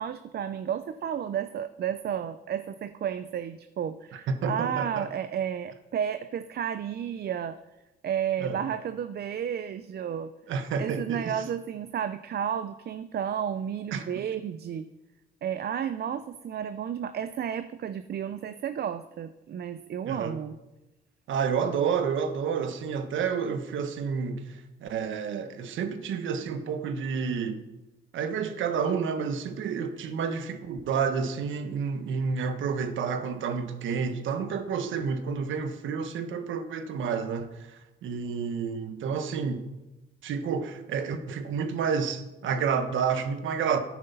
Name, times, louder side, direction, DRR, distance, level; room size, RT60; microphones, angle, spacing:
voice 1, 0.0-7.6 8.0-10.3 10.8-14.9 15.4-20.6, right 9 dB, 55° right, 12 dB, 0.6 m, -32 dB
voice 2, 4.3-5.1 8.4-8.6 10.5-11.3 13.9-14.1 20.0-20.4 21.3-27.6 28.1-37.5 38.0-39.7 40.2-43.8, right 6 dB, 75° right, 9 dB, 1.4 m, -30 dB
14.0 x 9.7 x 5.5 m, 1.0 s
cardioid pair, 90°, 20 cm